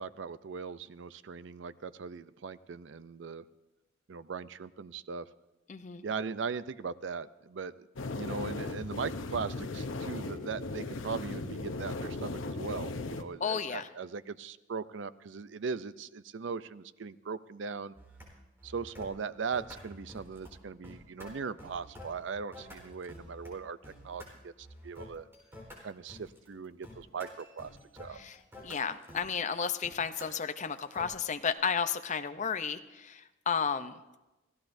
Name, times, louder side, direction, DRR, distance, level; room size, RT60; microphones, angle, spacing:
voice 1, 0.0-3.4 4.1-5.3 6.0-17.9 18.6-23.8 24.0-25.3 25.8-28.2, right 5 dB, 70° right, 15 dB, 0.5 m, -39 dB
voice 2, 5.7-6.0 13.4-13.9 28.2-28.4 28.6-33.9, left 6 dB, 40° left, 9 dB, 0.6 m, -33 dB
sound 1, 8.0-13.2, left 2 dB, 90° left, 0.8 m, -37 dB
sound 2, 18.0-18.3 18.6-19.1 19.5-20.5 20.8-23.5 23.8-24.3 24.6-31.1, left 1 dB, 15° right, 4.0 m, -50 dB
26.0 x 15.5 x 2.7 m, 1.0 s
head